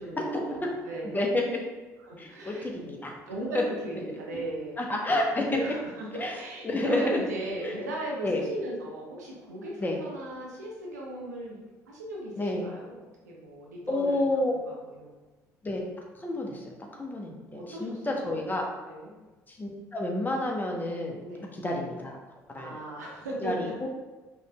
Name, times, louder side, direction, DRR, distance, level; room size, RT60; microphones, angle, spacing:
voice 1, 0.0-1.2 2.0-2.7 3.3-5.1 5.5-11.6 11.9-14.2 14.5-15.2 17.5-18.4 18.9-19.1 21.2-21.5 22.5-23.8, right 1 dB, 85° right, -3 dB, 0.8 m, -37 dB
voice 2, 1.0-1.6 2.2-3.1 3.5-3.6 4.8-5.6 6.1-6.4 6.6-7.2 7.6-7.7 8.2-8.4 9.8-10.0 12.4-12.6 13.9-14.5 15.6-15.8 16.2-16.6 16.9-18.7 19.5-21.2 21.5-22.2 22.5-22.7 23.4-23.9, left 2 dB, 20° left, 0 dB, 0.9 m, -29 dB
5.2 x 3.0 x 2.3 m, 1.2 s
figure-of-eight pair, 55°, 9 cm